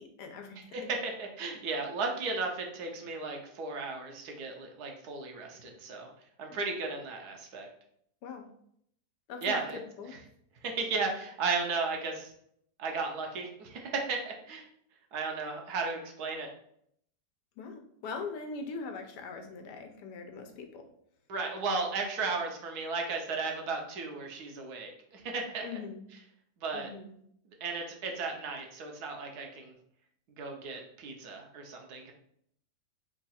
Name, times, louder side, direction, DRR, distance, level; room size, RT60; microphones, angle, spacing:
voice 1, 0.0-0.9 6.5-6.6 8.2-8.5 9.3-10.2 17.6-20.9 25.6-26.0 26.7-27.1, left 4 dB, 85° left, 5 dB, 1.3 m, -42 dB
voice 2, 0.7-6.1 6.4-7.7 9.4-9.8 10.6-12.3 12.8-14.7 15.1-16.5 21.3-25.6 26.6-26.9 27.6-29.7 30.4-32.1, right 4 dB, 75° right, 2 dB, 1.2 m, -35 dB
3.7 x 2.3 x 4.1 m, 0.69 s
omnidirectional pair, 1.7 m